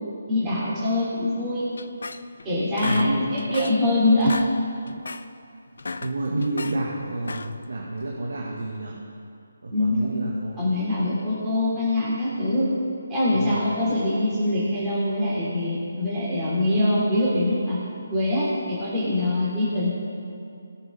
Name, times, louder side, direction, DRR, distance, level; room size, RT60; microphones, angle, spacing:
voice 1, 0.3-1.7 2.4-4.4 9.7-10.0 10.6-12.7 13.1-17.8 18.1-19.9, left 1 dB, 15° right, -10 dB, 3.0 m, -23 dB
sound 1, 1.8-2.5 2.8-3.9 4.1-4.5 4.9-5.3 5.7-6.8 7.2-7.7, left 3 dB, 70° left, 0.7 m, -33 dB
voice 2, 2.8-3.3 6.0-9.0 9.6-10.7 11.1-11.2 13.3-13.5, right 2 dB, 75° right, -3 dB, 2.0 m, -29 dB
21.0 x 7.1 x 3.7 m, 2.5 s
figure-of-eight pair, 160°, 0 cm